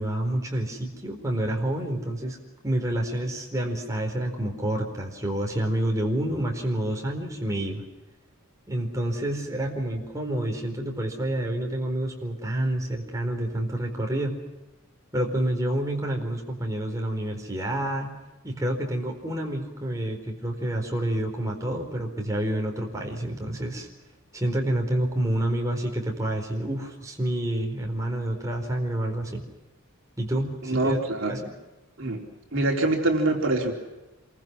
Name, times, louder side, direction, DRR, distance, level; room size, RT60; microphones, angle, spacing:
voice 1, 0.0-2.4 2.6-7.8 8.7-14.4 15.1-18.2 18.4-23.9 24.3-29.4 30.2-31.5, right 1 dB, 15° right, 1 dB, 4.4 m, -28 dB
voice 2, 30.6-31.4 32.0-32.2 32.5-33.7, right 2 dB, 60° right, 1 dB, 4.0 m, -24 dB
28.0 x 23.5 x 6.3 m, 1.1 s
head